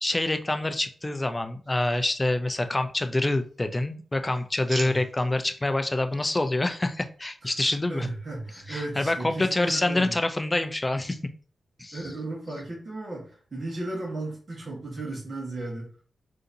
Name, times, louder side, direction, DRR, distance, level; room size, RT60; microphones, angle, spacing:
voice 1, 0.0-8.1 8.7-11.2 11.8-12.0, left 2 dB, 20° left, 8 dB, 0.4 m, -26 dB
sound 1, 1.6-2.7 3.1-3.8 4.1-5.5 6.1-6.4, right 3 dB, 70° right, 0.8 m, -43 dB
voice 2, 7.9-10.1 11.9-15.9, right 2 dB, 45° right, -5 dB, 1.2 m, -35 dB
3.8 x 2.7 x 2.6 m, 0.44 s
cardioid pair, 70°, 0 cm